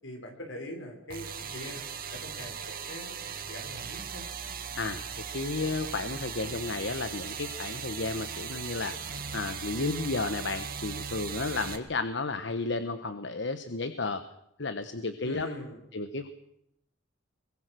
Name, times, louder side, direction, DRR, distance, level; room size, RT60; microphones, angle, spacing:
voice 1, 0.0-1.8 2.1-4.2 15.2-15.8, left 1 dB, 85° left, 3 dB, 5.8 m, -42 dB
sound 1, 1.1-11.8, right 6 dB, 50° right, 2.0 m, -38 dB
voice 2, 5.3-9.0 9.3-14.2 14.6-15.5 15.9-16.3, left 3 dB, 65° left, 10 dB, 1.2 m, -32 dB
23.0 x 23.0 x 6.3 m, 0.77 s
head